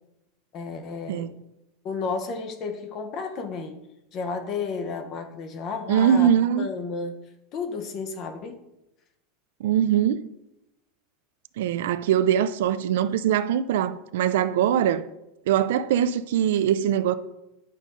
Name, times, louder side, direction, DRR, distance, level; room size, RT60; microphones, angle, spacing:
voice 1, 0.5-1.3 1.8-3.8 4.1-6.3 6.6-7.2 7.5-8.6, left 4 dB, 30° left, 0.8 m, -32 dB
voice 2, 5.9-6.7 9.6-10.2 11.6-15.0 15.5-17.1, right 9 dB, 75° right, 0.4 m, -22 dB
10.0 x 5.2 x 3.7 m
supercardioid pair, 175°, 0 cm